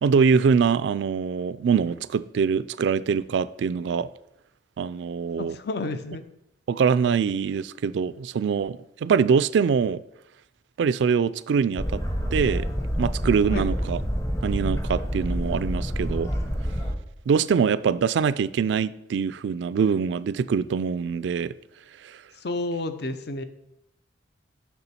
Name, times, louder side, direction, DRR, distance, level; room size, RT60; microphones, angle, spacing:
voice 1, 0.0-4.1 4.8-5.6 6.7-10.0 10.8-12.0 12.3-12.7 13.0-14.0 14.4-16.3 17.3-21.5 22.0-22.2, right 6 dB, 70° right, 0.3 m, -23 dB
voice 2, 5.4-6.2 13.5-13.7 22.4-23.4, left 2 dB, 55° left, 0.6 m, -30 dB
Boat Water vehicle, 11.8-16.9, equal, 15° left, 0.8 m, -27 dB
6.8 x 6.1 x 4.3 m
head